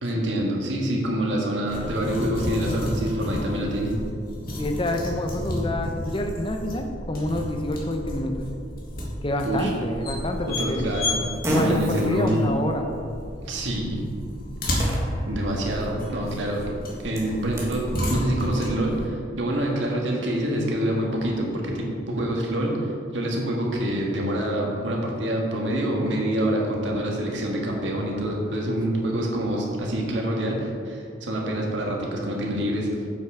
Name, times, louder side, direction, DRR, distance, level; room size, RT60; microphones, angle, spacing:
voice 1, 0.0-3.9 9.4-9.7 10.5-11.2 11.6-12.4 13.4-14.0 15.2-16.7 17.0-32.9, right 1 dB, 85° right, -1 dB, 1.6 m, -26 dB
sound 1, 1.7-19.1, left 1 dB, 55° left, 1.8 m, -32 dB
voice 2, 4.5-8.5 9.2-10.9 11.5-12.9, left 1 dB, 30° left, 5 dB, 0.7 m, -28 dB
Fart, 10.1-17.8, equal, 15° right, 1.5 m, -34 dB
7.7 x 6.0 x 4.9 m, 2.4 s
head